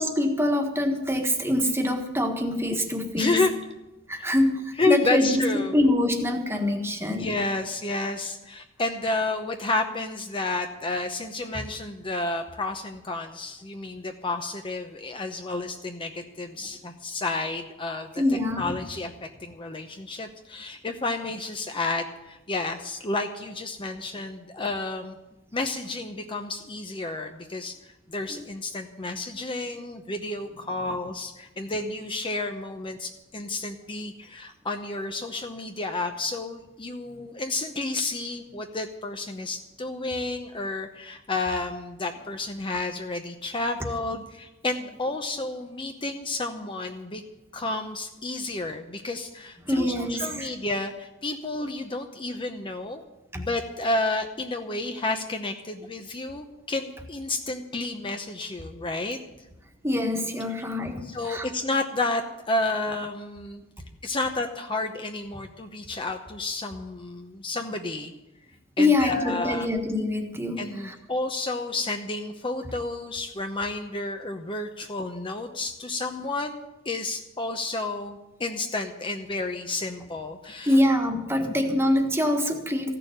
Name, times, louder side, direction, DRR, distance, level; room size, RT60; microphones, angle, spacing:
voice 1, 0.0-3.4 4.1-7.3 18.2-18.7 28.3-28.4 49.7-50.5 53.3-53.4 59.8-61.4 68.8-70.9 80.7-82.9, left 1 dB, 10° right, 4 dB, 1.5 m, -25 dB
voice 2, 3.2-3.5 4.2-4.3 4.8-5.7 7.1-18.1 18.6-25.2 25.5-27.8 28.1-47.2 47.5-53.0 53.3-59.2 61.0-63.6 64.0-68.1 68.8-69.7 70.6-80.8, left 2 dB, 25° left, 5 dB, 0.8 m, -31 dB
15.0 x 6.9 x 9.9 m, 1.0 s
head